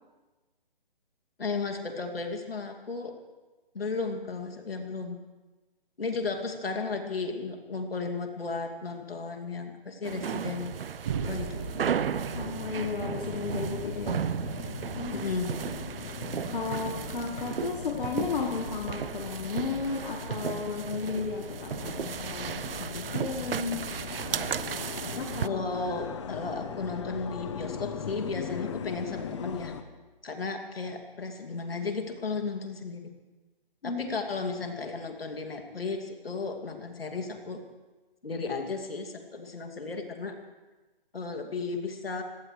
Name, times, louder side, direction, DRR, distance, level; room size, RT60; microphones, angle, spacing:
voice 1, 1.4-3.1 3.7-5.2 6.0-10.8 11.3-11.6 15.1-15.5 25.4-29.7 30.2-33.1 33.8-37.6 38.2-40.4 41.1-42.2, left 4 dB, 80° left, 4 dB, 2.6 m, -34 dB
sound 1, 10.0-25.5, right 8 dB, 75° right, 0.6 m, -35 dB
sound 2, 10.9-29.8, left 7 dB, 30° left, 0.9 m, -40 dB
sound 3, 11.1-15.0, right 6 dB, 25° right, 0.7 m, -39 dB
voice 2, 12.3-14.2 14.9-15.3 15.6-15.7 16.4-23.9 24.3-24.5 25.2-25.6 33.8-34.1, left 4 dB, 60° left, 2 dB, 1.6 m, -34 dB
25.0 x 17.5 x 3.3 m, 1.2 s
hypercardioid pair, 160°, 29 cm